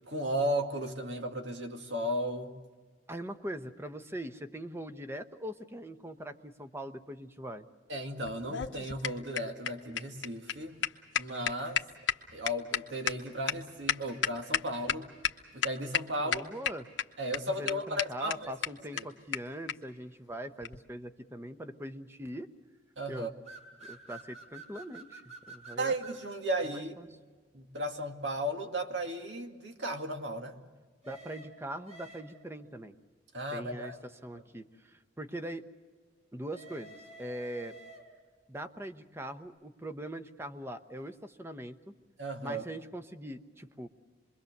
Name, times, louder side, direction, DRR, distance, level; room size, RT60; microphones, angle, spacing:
voice 1, 0.1-2.6 7.9-10.8 11.2-11.8 12.3-15.1 15.5-16.4 17.2-18.5 18.9-19.0 23.0-23.3 25.8-26.9 27.5-30.6 33.3-34.0 42.2-42.6, right 1 dB, 70° right, 4 dB, 2.2 m, -35 dB
voice 2, 3.1-7.7 16.2-16.9 17.6-22.5 23.1-23.3 23.8-25.9 26.7-27.1 31.0-32.9 33.5-35.6 36.3-37.7 38.5-41.7 42.4-43.9, right 1 dB, 15° right, 8 dB, 1.0 m, -42 dB
sound 1, 8.3-15.0 15.2-15.3 15.6-16.0 16.3-17.0 17.3-17.4 17.7-17.8 18.0-18.1 18.3-18.4 18.6-18.7 19.0-19.1 19.3-19.4 19.7-19.8 20.6-20.8, left 8 dB, 75° left, 1.1 m, -31 dB
sound 2, 23.5-26.2 31.0-32.6 36.5-38.3, right 3 dB, 35° right, 5.1 m, -50 dB
26.0 x 22.5 x 6.7 m, 1.4 s
head